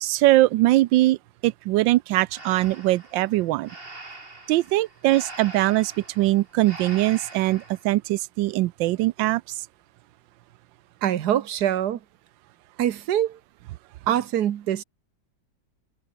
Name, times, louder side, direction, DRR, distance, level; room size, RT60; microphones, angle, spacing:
voice 1, 0.0-1.2 1.4-3.7 4.5-9.4, right 17 dB, 85° right, 1.3 m, -21 dB
Breathing, 2.3-7.8, right 2 dB, 30° right, 3.7 m, -43 dB
voice 2, 11.0-12.0 12.8-13.4 14.1-14.8, right 11 dB, 65° right, 1.4 m, -24 dB
omnidirectional pair, 2.0 m